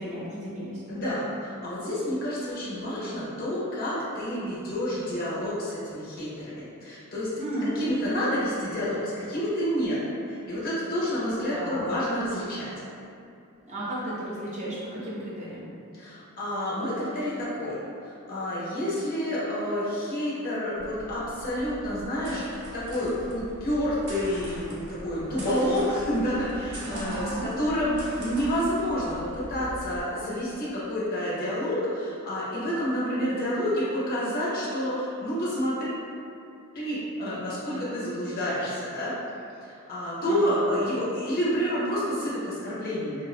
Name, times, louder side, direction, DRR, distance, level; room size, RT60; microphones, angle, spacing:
voice 1, 0.0-0.8 7.4-7.8 11.5-11.9 13.6-15.7 26.9-27.5 40.2-40.6, right 1 dB, 35° right, -8 dB, 0.6 m, -34 dB
voice 2, 0.9-6.5 6.8-7.3 7.6-10.0 10.3-12.7 15.9-17.7 18.0-35.9 36.7-39.1 39.6-43.2, equal, 45° left, -9 dB, 0.5 m, -29 dB
sound 1, 20.7-30.0, equal, 85° right, 0.5 m, -42 dB
2.6 x 2.0 x 2.4 m, 2.5 s
head